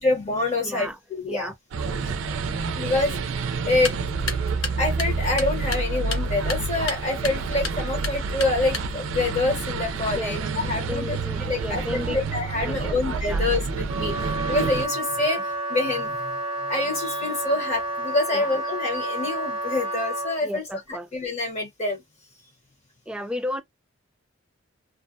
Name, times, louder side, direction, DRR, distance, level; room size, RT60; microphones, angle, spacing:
voice 1, 0.0-1.5 2.7-3.1 3.7-3.9 4.8-11.2 11.5-14.1 14.5-15.4 15.7-16.2 16.7-20.6 21.1-22.0, left 2 dB, 35° left, 1.0 m, -26 dB
voice 2, 0.6-1.0 1.3-1.5 10.1-10.4 10.9-12.2 12.6-13.0 13.3-13.5 15.3-15.4 18.3-18.6 20.4-21.1 23.1-23.6, left 1 dB, 5° right, 0.3 m, -33 dB
sound 1, 1.7-14.9, right 4 dB, 85° right, 0.4 m, -28 dB
sound 2, 3.7-9.2, left 4 dB, 80° left, 0.7 m, -35 dB
Wind instrument woodwind instrument, 13.9-20.4, right 1 dB, 30° right, 0.7 m, -30 dB
2.5 x 2.1 x 2.5 m
head